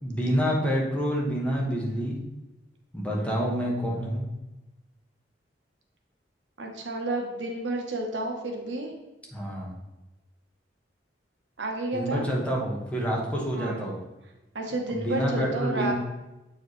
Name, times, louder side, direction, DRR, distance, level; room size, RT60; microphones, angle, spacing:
voice 1, 0.0-2.2 2.9-4.3 9.3-9.7 11.9-14.0 14.9-15.9, equal, 5° left, -3 dB, 1.2 m, -27 dB
voice 2, 3.1-3.5 6.6-8.9 11.6-12.3 13.5-13.9 14.5-15.9, right 2 dB, 80° right, 1 dB, 1.1 m, -31 dB
7.9 x 4.7 x 3.2 m, 1.0 s
head